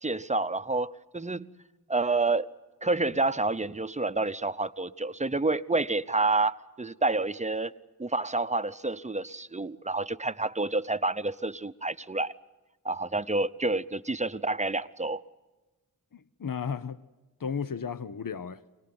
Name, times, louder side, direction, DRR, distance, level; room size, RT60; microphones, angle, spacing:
voice 1, 0.0-1.5 1.9-2.5 2.8-7.7 8.0-12.3 12.8-15.2, right 3 dB, 20° right, 0.8 m, -28 dB
voice 2, 16.1-17.0 17.4-18.6, left 6 dB, 55° left, 0.9 m, -34 dB
24.5 x 19.0 x 9.6 m
wide cardioid pair, 45°, 39 cm